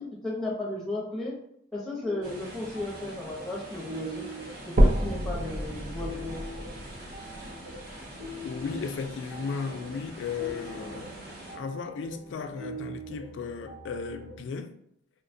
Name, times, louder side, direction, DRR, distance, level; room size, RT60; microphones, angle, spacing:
voice 1, 0.0-1.4 1.7-4.3 4.7-6.4, left 2 dB, ahead, 0.6 m, -34 dB
sound 1, 2.0-14.4, right 1 dB, 90° right, 1.3 m, -44 dB
sound 2, 2.2-11.6, right 1 dB, 55° right, 0.8 m, -44 dB
sound 3, 4.8-8.8 9.3-9.4 10.0-10.1 10.4-10.5 11.4-11.5, equal, 40° right, 0.3 m, -28 dB
voice 2, 8.4-11.2 11.5-14.8, left 5 dB, 75° left, 0.3 m, -35 dB
4.1 x 2.2 x 2.5 m
head